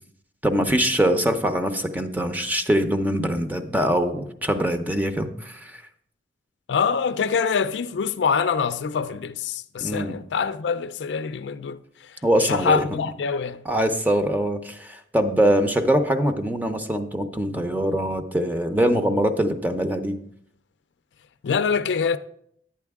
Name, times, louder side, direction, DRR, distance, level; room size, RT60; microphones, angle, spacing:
voice 1, 0.4-5.8 9.8-10.2 12.2-12.8 13.6-20.2, right 1 dB, 10° right, 0.6 m, -23 dB
voice 2, 6.7-11.8 12.1-13.6 21.4-22.2, left 6 dB, 80° left, 0.4 m, -25 dB
11.5 x 8.6 x 3.5 m
head